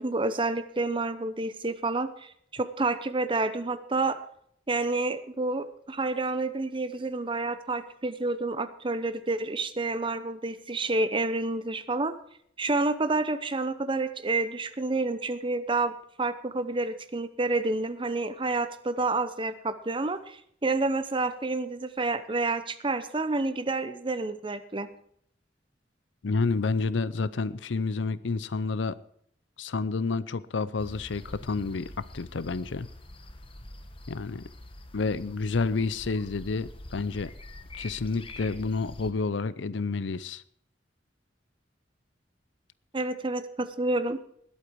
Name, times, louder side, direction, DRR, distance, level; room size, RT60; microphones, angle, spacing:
voice 1, 0.0-4.2 4.7-12.1 12.6-15.9 16.2-24.9 42.9-44.2, right 3 dB, 30° right, 12 dB, 0.8 m, -29 dB
voice 2, 26.2-29.0 29.6-32.9 34.1-34.5 34.9-37.3 37.8-40.4, left 4 dB, 85° left, 17 dB, 0.6 m, -29 dB
sound 1, 30.8-39.1, left 1 dB, 30° left, 1.2 m, -45 dB
20.0 x 8.3 x 4.7 m, 0.67 s
head